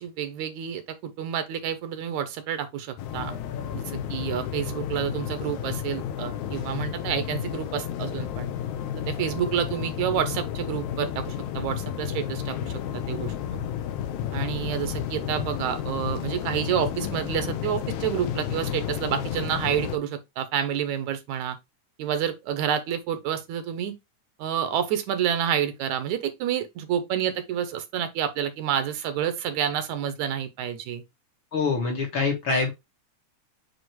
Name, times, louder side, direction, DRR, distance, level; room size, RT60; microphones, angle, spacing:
voice 1, 0.0-3.4 3.7-8.5 9.1-13.6 14.3-21.6 22.0-24.0 24.4-31.0, right 9 dB, 75° right, 2.2 m, -29 dB
sound 1, 3.0-20.0, left 9 dB, 75° left, 2.1 m, -32 dB
voice 2, 31.5-32.7, left 4 dB, 50° left, 1.8 m, -25 dB
7.9 x 3.0 x 4.5 m
omnidirectional pair, 3.5 m